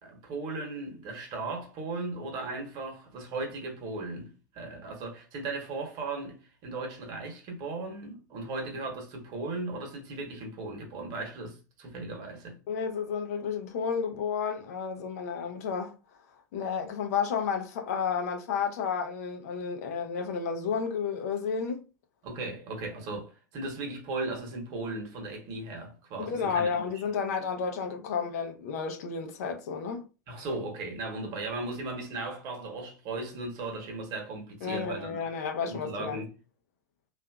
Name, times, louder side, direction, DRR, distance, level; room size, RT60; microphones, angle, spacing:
voice 1, 0.0-12.6 22.2-26.7 30.3-35.3 35.6-36.3, right 3 dB, 40° right, 1.0 m, -37 dB
voice 2, 12.7-15.9 16.5-21.8 26.2-30.0 34.6-36.2, left 6 dB, 55° left, 0.5 m, -31 dB
2.6 x 2.4 x 2.3 m
figure-of-eight pair, 90°, 10 cm